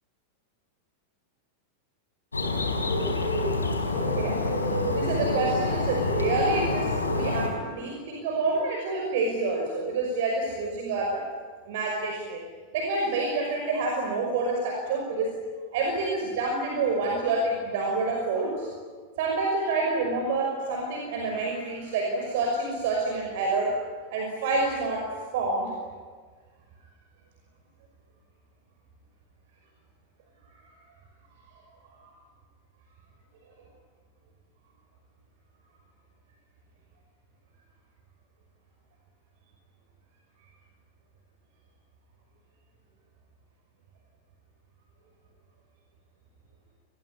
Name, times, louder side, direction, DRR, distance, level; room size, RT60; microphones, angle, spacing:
Bird, 2.3-7.5, left 2 dB, 80° left, 4.4 m, -27 dB
voice 1, 4.1-11.3 11.6-12.4 12.7-15.4 15.7-18.7 19.2-23.8 24.1-25.7, right 3 dB, 50° right, 2 dB, 5.7 m, -28 dB
29.0 x 21.0 x 9.9 m, 1.5 s
figure-of-eight pair, 90°, 0 cm